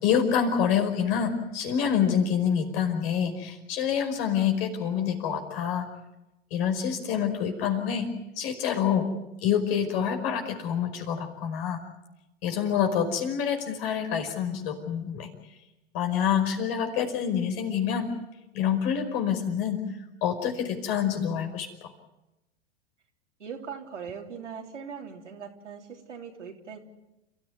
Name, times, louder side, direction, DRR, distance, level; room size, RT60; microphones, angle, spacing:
voice 1, 0.0-5.9 6.5-8.1 8.4-9.1 9.4-11.8 12.4-15.3 15.9-18.1 18.5-19.8 20.2-21.9, left 8 dB, 55° left, 5 dB, 5.2 m, -27 dB
voice 2, 23.4-26.8, right 6 dB, 85° right, 1 dB, 3.5 m, -40 dB
29.5 x 14.5 x 9.5 m, 0.99 s
hypercardioid pair, 100°, 35 cm